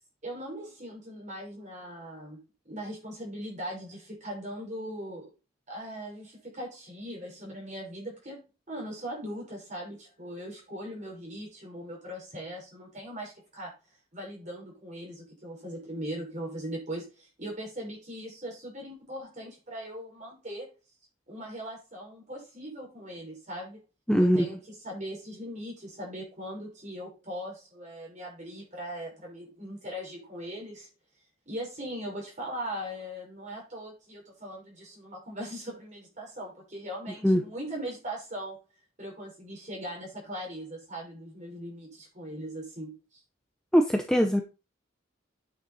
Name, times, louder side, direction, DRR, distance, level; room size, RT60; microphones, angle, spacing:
voice 1, 0.2-2.4 2.7-5.3 5.7-8.4 8.7-13.7 14.1-20.7 21.3-23.8 24.2-30.9 31.5-38.6 39.0-42.9, equal, 35° right, -2 dB, 6.0 m, -40 dB
voice 2, 24.1-24.5 37.2-37.4 43.7-44.4, equal, 5° left, 4 dB, 0.7 m, -21 dB
9.6 x 6.5 x 4.2 m, 0.29 s
head